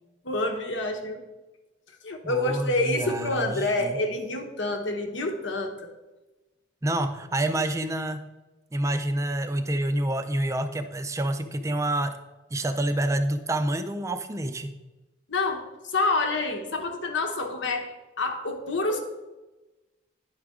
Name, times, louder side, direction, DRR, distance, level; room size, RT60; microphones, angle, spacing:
voice 1, 0.2-1.2 2.0-5.9 15.3-15.6 15.9-19.0, left 2 dB, 75° left, 3 dB, 1.0 m, -27 dB
voice 2, 2.2-4.0 6.8-8.3 8.7-12.2 12.5-14.7, right 1 dB, 15° right, 9 dB, 0.4 m, -28 dB
10.5 x 4.8 x 3.6 m, 1.1 s
head